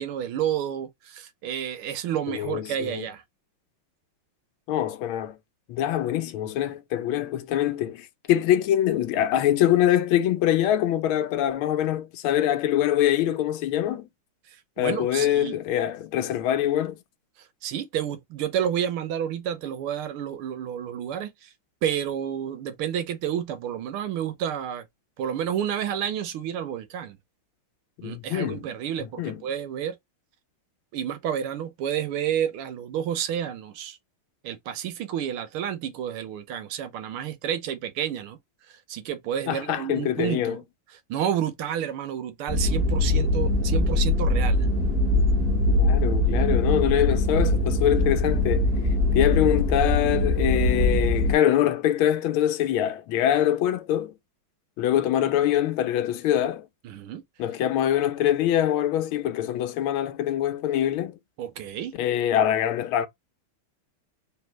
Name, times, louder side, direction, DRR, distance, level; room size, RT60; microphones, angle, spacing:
voice 1, 0.0-3.2 14.8-15.6 17.6-21.5 21.8-24.8 25.2-27.2 28.0-30.0 30.9-34.0 34.4-38.4 38.9-40.6 41.1-44.7 56.8-57.2 61.4-61.9, right 9 dB, 85° right, 1.6 m, -30 dB
voice 2, 2.3-3.1 4.7-5.4 5.7-14.1 14.8-17.0 28.0-28.6 29.0-29.4 39.5-40.6 45.8-48.7 49.1-54.1 54.8-56.7 57.4-61.2 62.0-63.1, left 11 dB, 75° left, 1.5 m, -24 dB
sound 1, 42.5-51.3, left 2 dB, 30° right, 1.8 m, -22 dB
3.9 x 3.4 x 2.9 m
omnidirectional pair, 2.4 m